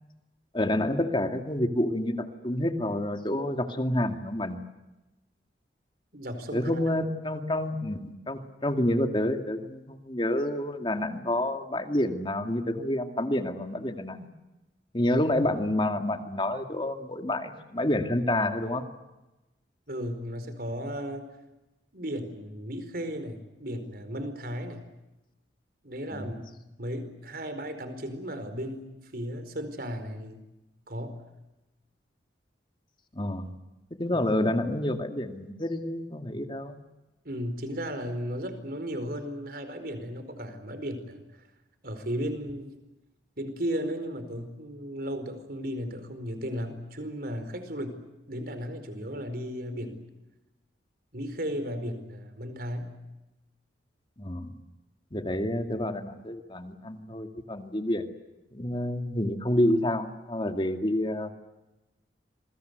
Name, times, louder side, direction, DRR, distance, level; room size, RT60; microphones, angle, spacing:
voice 1, 0.5-4.6 6.5-14.3 14.9-18.8 26.1-26.3 33.1-33.5 34.0-36.8 54.2-54.5 55.1-58.0 58.5-61.3, left 1 dB, 25° left, 6 dB, 2.2 m, -28 dB
voice 2, 6.1-6.9 19.9-21.3 21.9-24.9 25.8-26.4 26.8-30.4 30.9-31.2 37.2-41.2 41.8-42.7 43.4-48.0 48.3-50.0 51.1-52.9, equal, 55° right, 9 dB, 4.7 m, -35 dB
27.5 x 23.0 x 8.1 m, 1.0 s
head